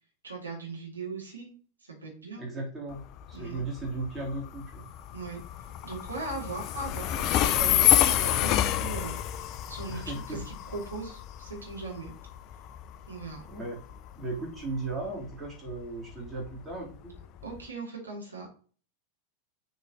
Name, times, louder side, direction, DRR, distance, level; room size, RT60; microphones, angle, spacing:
voice 1, 0.2-1.5 2.0-2.4 3.3-3.6 5.1-5.4 5.8-12.1 13.1-13.4 17.4-18.5, right 3 dB, 75° right, -1 dB, 2.3 m, -39 dB
voice 2, 2.4-4.9 9.9-10.5 13.5-13.8 14.2-17.1, right 2 dB, 15° right, -4 dB, 3.4 m, -36 dB
Train, 2.9-17.6, left 12 dB, 40° left, 0.4 m, -29 dB
6.6 x 6.3 x 3.0 m, 0.40 s
figure-of-eight pair, 90°, 0 cm